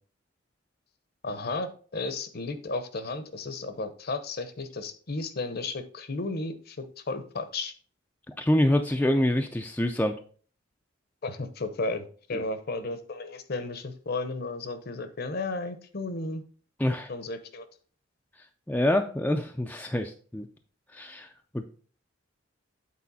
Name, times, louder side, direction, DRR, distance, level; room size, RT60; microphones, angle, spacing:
voice 1, 1.2-7.7 11.2-16.4 17.1-17.7, left 3 dB, 50° left, 10 dB, 0.8 m, -34 dB
voice 2, 8.3-10.1 12.3-12.4 16.8-17.1 18.7-20.5 20.9-21.3 21.5-21.7, left 1 dB, 10° left, 4 dB, 0.4 m, -26 dB
8.5 x 4.3 x 4.1 m, 0.42 s
head